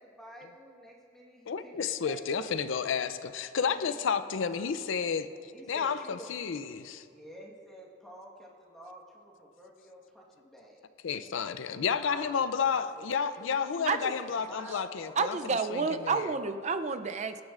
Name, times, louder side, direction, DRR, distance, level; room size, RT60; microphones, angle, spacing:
voice 1, 0.0-2.6 3.6-4.0 4.5-4.7 5.5-6.3 7.1-10.8 11.2-11.3 11.8-12.3 12.7-13.0 13.4-15.2, equal, ahead, -4 dB, 1.4 m, -50 dB
voice 2, 1.5-5.3 5.7-7.0 11.0-16.2, left 6 dB, 70° left, 12 dB, 0.4 m, -31 dB
voice 3, 15.2-17.4, right 4 dB, 35° right, 9 dB, 0.4 m, -30 dB
23.5 x 9.5 x 2.5 m, 2.5 s
head